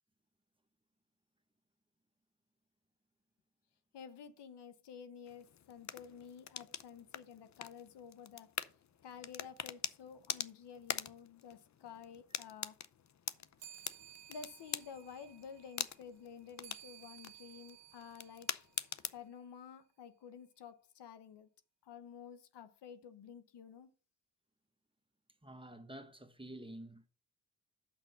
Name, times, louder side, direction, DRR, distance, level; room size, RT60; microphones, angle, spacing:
voice 1, 3.9-8.5 9.0-12.8 14.3-18.6 19.1-21.5 21.8-23.9, left 7 dB, 70° left, 1.0 m, -52 dB
sound 1, 5.3-19.3, left 9 dB, 40° left, 0.6 m, -45 dB
sound 2, 13.6-19.4, right 12 dB, 75° right, 0.8 m, -58 dB
voice 2, 25.4-27.1, right 1 dB, 10° right, 1.1 m, -49 dB
5.9 x 5.4 x 6.9 m
supercardioid pair, 55°, 42 cm